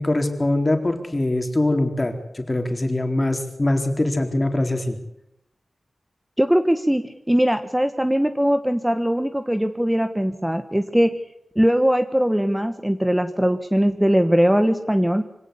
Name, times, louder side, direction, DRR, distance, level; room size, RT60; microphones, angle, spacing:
voice 1, 0.0-5.0, left 1 dB, 25° left, 5 dB, 4.1 m, -23 dB
voice 2, 6.4-11.1 11.6-15.2, equal, 10° right, 9 dB, 1.3 m, -20 dB
24.5 x 17.5 x 8.5 m, 0.82 s
cardioid pair, 65°, 0 cm